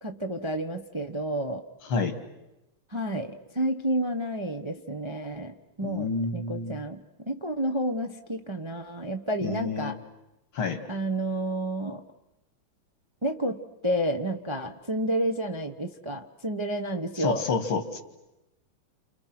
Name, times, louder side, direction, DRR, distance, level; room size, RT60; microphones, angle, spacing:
voice 1, 0.0-1.6 2.9-10.0 10.9-12.0 13.2-17.4, right 1 dB, 20° right, 4 dB, 0.8 m, -30 dB
voice 2, 1.8-2.2 5.8-6.8 9.4-10.0 10.5-10.8 17.1-18.0, left 4 dB, 80° left, 7 dB, 3.0 m, -29 dB
29.5 x 29.0 x 6.1 m, 0.95 s
omnidirectional pair, 2.3 m